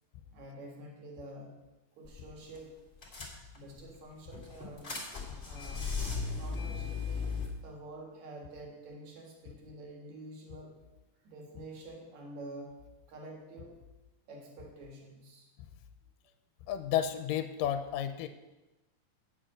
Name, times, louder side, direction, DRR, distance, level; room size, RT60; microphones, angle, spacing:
voice 1, 0.3-1.7 2.0-2.8 3.5-4.9 5.4-6.1 6.4-7.4 7.6-10.9 11.2-12.8 13.1-13.8 14.3-15.5, right 1 dB, 60° right, 1 dB, 3.1 m, -48 dB
sound 1, 2.0-2.3 2.5-2.6 3.0-3.8 4.3-7.5, left 5 dB, 25° left, 1.8 m, -36 dB
voice 2, 16.7-18.3, left 10 dB, 85° left, 9 dB, 2.3 m, -32 dB
8.9 x 7.6 x 6.3 m, 1.0 s
omnidirectional pair, 3.9 m